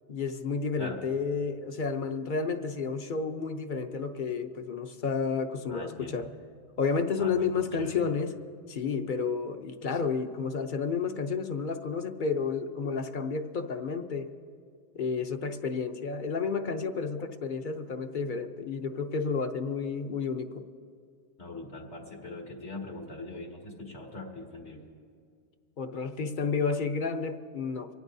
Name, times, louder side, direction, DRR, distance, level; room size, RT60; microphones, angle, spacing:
voice 1, 0.1-6.3 6.8-8.3 8.7-14.3 14.9-20.6 25.8-27.9, left 5 dB, 50° left, 7 dB, 0.8 m, -31 dB
voice 2, 5.7-6.3 7.2-8.0 21.4-24.8, left 2 dB, 80° left, -1 dB, 2.3 m, -42 dB
24.0 x 17.5 x 2.7 m, 2.2 s
omnidirectional pair, 1.1 m